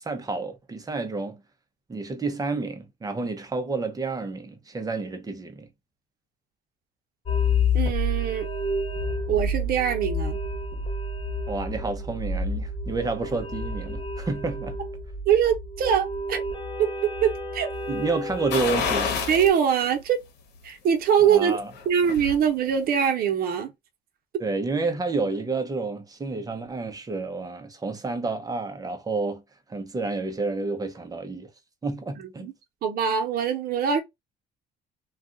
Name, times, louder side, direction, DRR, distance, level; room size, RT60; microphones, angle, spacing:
voice 1, 0.0-1.4 1.9-5.7 11.5-14.8 17.9-19.2 21.2-21.7 24.4-29.4 29.7-31.5 31.8-32.5, right 3 dB, 20° right, 0.8 m, -30 dB
sound 1, 7.3-19.5, left 2 dB, 30° left, 0.8 m, -29 dB
voice 2, 7.7-8.5 9.3-10.4 15.3-16.4 16.8-17.7 19.3-20.2 20.6-23.7 32.2-32.5 32.8-34.0, right 8 dB, 60° right, 0.9 m, -23 dB
sound 2, 18.5-19.6 20.0-20.1 21.6-22.4 22.7-22.8, left 5 dB, 75° left, 1.0 m, -28 dB
2.4 x 2.3 x 3.7 m
cardioid pair, 110°, 17 cm